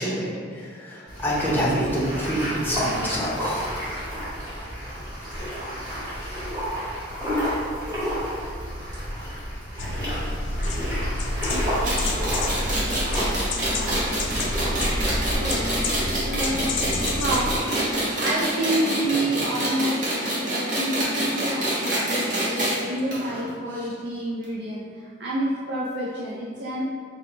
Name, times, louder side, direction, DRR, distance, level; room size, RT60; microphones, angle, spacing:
voice 1, 0.0-3.7 23.2-23.5 23.7-23.9, equal, 10° left, -6 dB, 0.7 m, -27 dB
sound 1, 1.1-15.4, equal, 20° right, 1.3 m, -30 dB
sound 2, 9.8-17.6, left 2 dB, 70° left, 0.4 m, -30 dB
sound 3, 11.5-22.8 23.1-23.2 23.5-23.6 24.4-24.5, right 1 dB, 40° right, 1.1 m, -26 dB
voice 2, 15.3-15.7 16.2-16.7 17.0-24.9 25.2-26.8, right 1 dB, 60° right, -5 dB, 0.4 m, -29 dB
4.6 x 2.1 x 3.9 m, 2.2 s
head